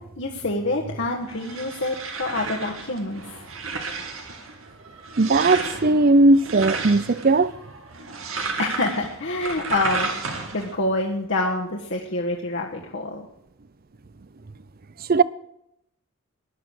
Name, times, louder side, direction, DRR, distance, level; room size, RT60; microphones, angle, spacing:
voice 1, 0.2-3.4 8.6-10.1 10.5-13.3, left 2 dB, 60° left, 1.5 m, -26 dB
sound 1, 1.1-10.7, right 4 dB, 90° right, 2.5 m, -33 dB
voice 2, 5.2-7.5 15.0-15.2, right 2 dB, 45° right, 0.6 m, -18 dB
17.0 x 11.0 x 6.5 m
head